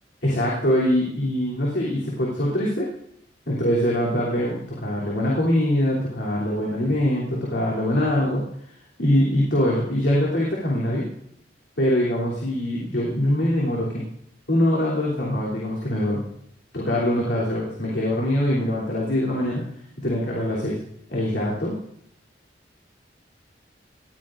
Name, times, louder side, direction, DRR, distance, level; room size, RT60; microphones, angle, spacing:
voice 1, 0.2-2.9 3.4-8.4 9.0-11.0 11.8-14.0 14.5-16.2 16.7-19.6 20.0-20.8 21.1-21.8, left 1 dB, 75° left, -6 dB, 3.2 m, -23 dB
20.0 x 15.0 x 2.6 m, 0.73 s
head